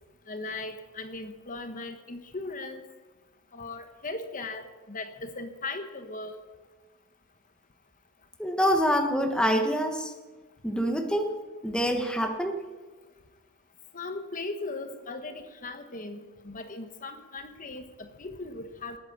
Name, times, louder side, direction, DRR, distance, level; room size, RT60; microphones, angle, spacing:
voice 1, 0.3-2.8 3.5-6.4 13.9-19.0, left 3 dB, 35° left, 8 dB, 1.2 m, -38 dB
voice 2, 8.4-10.1 10.6-12.6, equal, 5° left, 5 dB, 1.2 m, -26 dB
19.0 x 9.4 x 7.3 m, 1.3 s
head